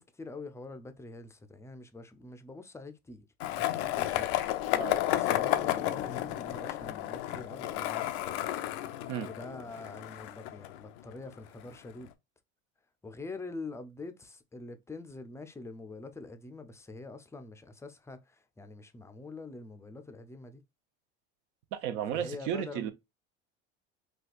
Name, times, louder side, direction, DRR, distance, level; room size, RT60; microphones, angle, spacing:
voice 1, 0.0-3.3 3.6-4.5 5.1-8.1 9.3-12.1 13.0-20.6 22.1-22.9, left 3 dB, 10° left, 0.5 m, -45 dB
Skateboard, 3.4-11.3, left 14 dB, 75° left, 0.5 m, -32 dB
voice 2, 21.7-22.9, right 9 dB, 65° right, 0.7 m, -33 dB
4.1 x 2.3 x 2.4 m
supercardioid pair, 90°, 33 cm